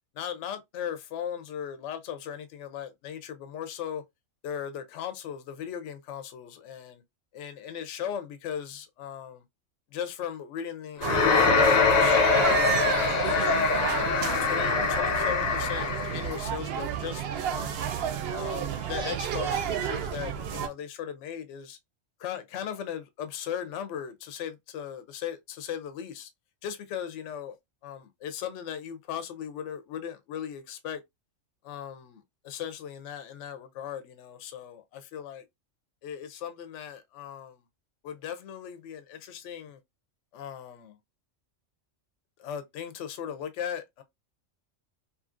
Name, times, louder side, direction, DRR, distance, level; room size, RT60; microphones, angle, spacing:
voice 1, 0.1-4.0 4.4-7.0 7.3-9.4 9.9-13.5 14.0-17.8 18.3-21.8 22.2-26.3 26.6-27.6 27.8-31.0 31.6-35.4 36.0-37.6 38.0-39.8 40.3-41.0 42.4-44.0, left 9 dB, 70° left, 0.9 m, -38 dB
sound 1, 11.0-16.4, left 5 dB, 55° left, 0.4 m, -24 dB
sound 2, 11.0-20.7, right 8 dB, 65° right, 0.7 m, -31 dB
2.8 x 2.5 x 2.4 m
omnidirectional pair, 1.3 m